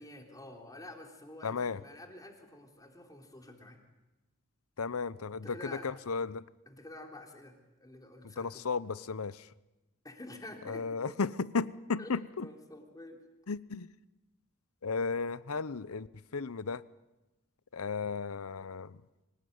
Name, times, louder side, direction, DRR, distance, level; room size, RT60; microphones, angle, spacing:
voice 1, 0.0-3.8 5.4-6.0 6.6-8.7 10.0-11.0 12.0-13.2, left 1 dB, 15° left, 2 dB, 3.4 m, -49 dB
voice 2, 1.4-1.8 4.8-5.6 5.8-6.4 8.4-9.5 10.7-12.5 13.5-13.9 14.8-16.1 16.3-16.8 17.7-19.0, left 4 dB, 80° left, 18 dB, 0.8 m, -34 dB
24.5 x 18.5 x 9.5 m, 1.0 s
head